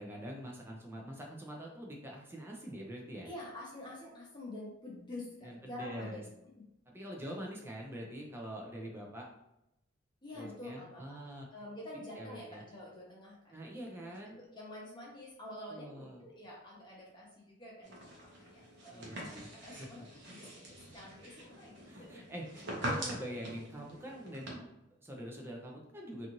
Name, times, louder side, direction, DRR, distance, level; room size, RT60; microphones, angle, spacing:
voice 1, 0.0-3.3 5.4-6.2 6.9-9.3 10.4-11.5 12.1-12.6 13.5-14.4 15.7-16.3 18.9-19.5 19.8-19.9 21.9-26.3, equal, 10° right, -1 dB, 0.4 m, -45 dB
voice 2, 3.2-6.2 10.2-11.2 11.5-20.0 20.3-22.2, left 1 dB, 25° left, -5 dB, 0.8 m, -48 dB
sound 1, 17.8-24.5, right 1 dB, 60° right, 0.8 m, -43 dB
2.6 x 2.4 x 2.9 m, 0.87 s
head